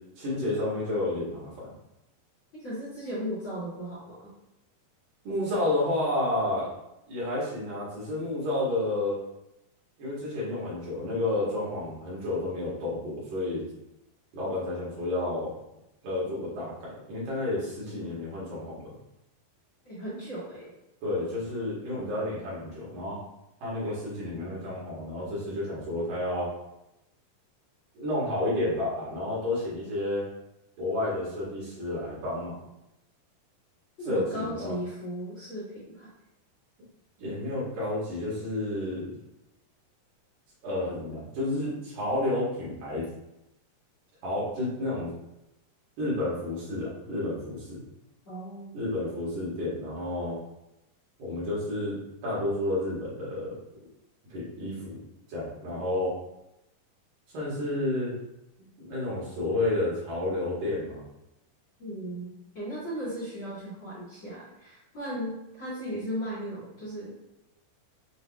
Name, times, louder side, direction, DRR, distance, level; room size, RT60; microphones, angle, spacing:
voice 1, 0.2-1.7 5.2-6.7 7.1-9.2 10.0-13.7 14.3-15.5 16.0-18.8 21.0-23.2 23.6-26.5 27.9-30.2 30.8-32.6 34.0-34.7 37.2-39.1 40.6-43.1 44.2-45.1 46.0-47.8 48.7-50.4 51.2-53.6 54.3-55.0 55.3-56.1 57.3-58.1 58.9-61.0, left 1 dB, 65° right, -7 dB, 3.1 m, -30 dB
voice 2, 2.5-4.3 19.8-20.7 34.0-36.1 48.3-48.8 61.8-67.1, equal, 45° left, -8 dB, 2.0 m, -36 dB
7.9 x 2.9 x 2.3 m, 0.88 s
omnidirectional pair, 4.3 m